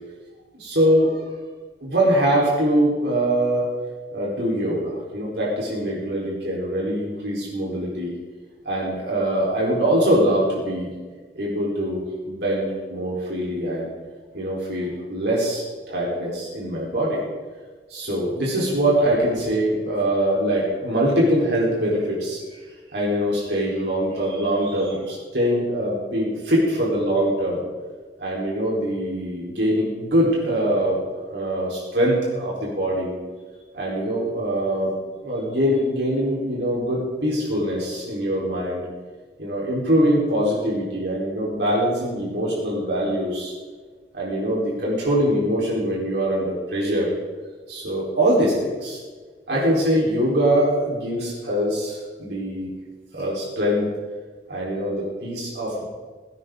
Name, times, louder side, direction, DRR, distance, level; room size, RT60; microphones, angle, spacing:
voice 1, 0.5-1.2 1.8-3.7 4.1-8.1 8.6-10.9 11.3-13.9 14.3-17.2 17.9-22.6 22.9-27.6 28.2-31.0 31.3-33.2 33.7-34.9 35.2-38.8 39.4-43.5 44.1-47.1 47.7-49.0 49.5-52.7 53.1-53.9 54.5-55.8, equal, 70° right, -4 dB, 4.3 m, -23 dB
17.0 x 16.5 x 3.9 m, 1.4 s
head